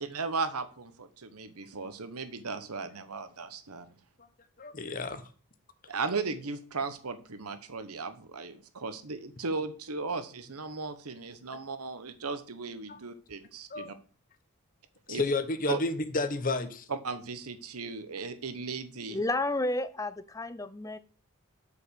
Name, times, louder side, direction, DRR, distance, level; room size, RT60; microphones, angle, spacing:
voice 1, 0.0-3.9 5.9-14.0 15.1-15.2 15.7-15.8 16.9-19.2, right 4 dB, 90° right, 1.1 m, -36 dB
voice 2, 4.6-5.2 12.9-13.0 13.7-13.9 15.1-16.9, left 3 dB, 40° left, 1.0 m, -31 dB
voice 3, 19.1-21.0, left 2 dB, 15° left, 0.5 m, -31 dB
8.5 x 5.1 x 6.9 m
head